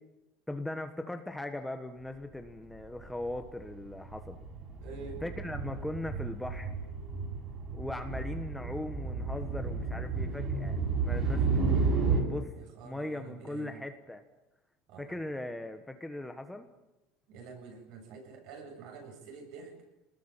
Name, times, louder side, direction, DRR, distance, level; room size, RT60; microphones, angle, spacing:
voice 1, 0.5-4.4 5.2-6.8 7.7-12.5 12.8-14.2 15.0-16.7, left 1 dB, 5° left, 6 dB, 1.3 m, -39 dB
sound 1, 3.0-3.3 3.6-12.2, right 4 dB, 30° right, 7.3 m, -32 dB
voice 2, 4.8-5.2 12.6-13.8 14.9-15.2 17.3-19.7, right 5 dB, 55° right, 4 dB, 7.8 m, -47 dB
29.0 x 20.5 x 9.0 m, 0.94 s
cardioid pair, 165°, 0 cm